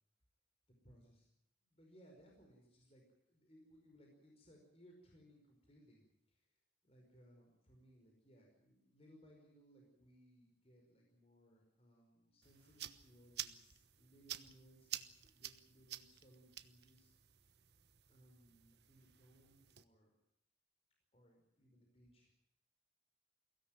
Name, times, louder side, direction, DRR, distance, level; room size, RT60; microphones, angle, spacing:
voice 1, 0.8-1.3 1.6-6.5 6.8-17.1 18.0-20.1 21.1-22.3, equal, 35° left, 0 dB, 5.2 m, -65 dB
sound 1, 12.4-19.8, right 12 dB, 70° right, 1.2 m, -51 dB
23.0 x 17.0 x 9.3 m, 0.80 s
head